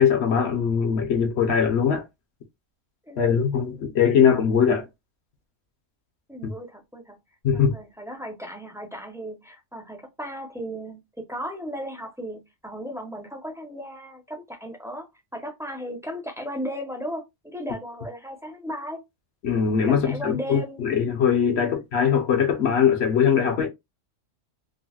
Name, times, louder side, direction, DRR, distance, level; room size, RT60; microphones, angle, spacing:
voice 1, 0.0-2.0 3.2-4.9 6.4-6.5 7.4-7.7 19.4-23.7, left 7 dB, 60° left, 0.9 m, -21 dB
voice 2, 3.1-3.4 6.3-7.2 7.5-15.1 15.3-19.0 19.9-20.8 21.6-21.8, equal, 5° right, 0.4 m, -36 dB
3.8 x 2.0 x 2.3 m
omnidirectional pair, 1.4 m